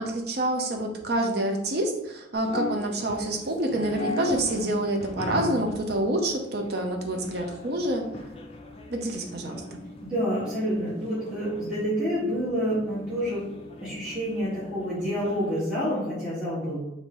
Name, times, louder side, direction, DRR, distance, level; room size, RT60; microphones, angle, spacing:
voice 1, 0.0-8.1 8.9-9.8, right 1 dB, 55° right, 2 dB, 0.6 m, -27 dB
sound 1, 2.3-15.6, left 3 dB, 30° left, 0.5 m, -39 dB
voice 2, 10.0-13.4 13.8-16.8, equal, 5° right, -12 dB, 1.4 m, -28 dB
5.2 x 2.7 x 3.1 m, 0.87 s
head